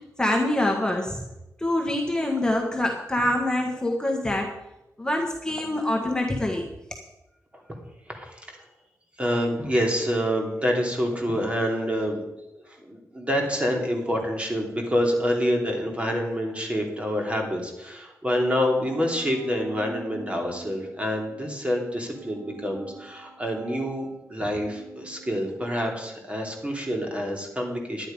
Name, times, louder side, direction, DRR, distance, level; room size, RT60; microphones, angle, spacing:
voice 1, 0.2-1.2 1.6-4.5 5.0-6.6, left 1 dB, 10° left, 1 dB, 1.5 m, -25 dB
voice 2, 8.1-8.7 9.2-12.2 12.5-28.1, equal, 20° right, 1 dB, 3.0 m, -27 dB
sound 1, 18.8-27.0, right 2 dB, 65° right, 2.4 m, -46 dB
11.5 x 9.7 x 5.3 m, 0.93 s
cardioid pair, 70°, 6 cm